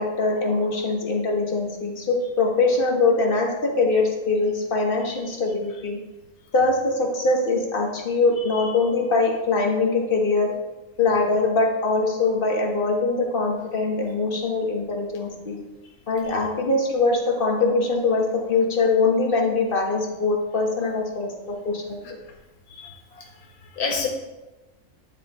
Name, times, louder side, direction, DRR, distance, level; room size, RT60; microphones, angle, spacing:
voice 1, 0.0-6.0 6.5-10.5 11.0-15.6 16.1-22.0, left 3 dB, 40° left, 0 dB, 1.1 m, -22 dB
voice 2, 22.7-24.1, left 4 dB, 90° left, 1 dB, 1.4 m, -31 dB
9.7 x 3.8 x 4.0 m, 1.1 s
omnidirectional pair, 1.5 m